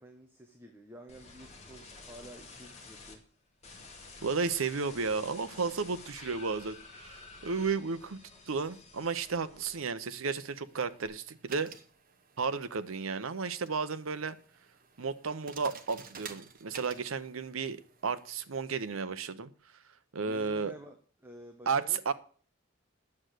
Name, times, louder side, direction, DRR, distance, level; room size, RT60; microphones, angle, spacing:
voice 1, 0.0-3.2 20.3-22.0, equal, 10° right, 4 dB, 1.1 m, -51 dB
sound 1, 1.1-3.1 3.6-10.2 10.5-11.1, left 3 dB, 30° left, 2.2 m, -51 dB
voice 2, 4.2-8.2 8.5-11.7 12.4-14.4 15.0-19.5 20.1-20.7 21.7-22.1, right 5 dB, 85° right, 13 dB, 0.8 m, -33 dB
sound 2, 10.1-19.0, right 6 dB, 45° right, 1.0 m, -52 dB
9.7 x 7.8 x 6.5 m, 0.43 s
head